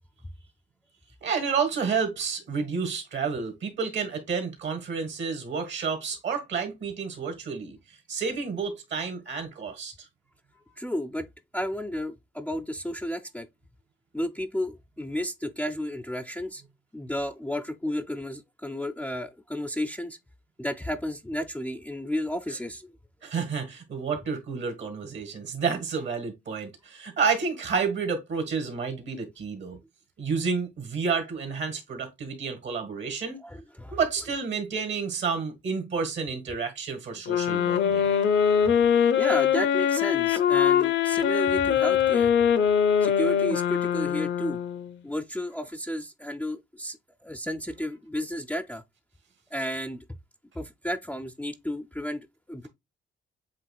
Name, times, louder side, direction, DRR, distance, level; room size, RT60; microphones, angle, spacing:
voice 1, 1.2-9.9 23.2-29.8 30.2-33.4 33.9-38.1, right 5 dB, 65° right, 1.8 m, -30 dB
voice 2, 10.8-11.3 11.5-13.5 14.1-16.6 16.9-20.2 20.6-22.9 33.4-34.0 39.2-42.3 43.0-44.6 45.0-47.0 47.2-48.8 49.5-50.0 50.6-52.7, equal, 5° left, 0.4 m, -32 dB
sound 1, 37.3-45.0, left 8 dB, 70° left, 0.6 m, -23 dB
7.5 x 2.9 x 2.3 m
cardioid pair, 90°, 20 cm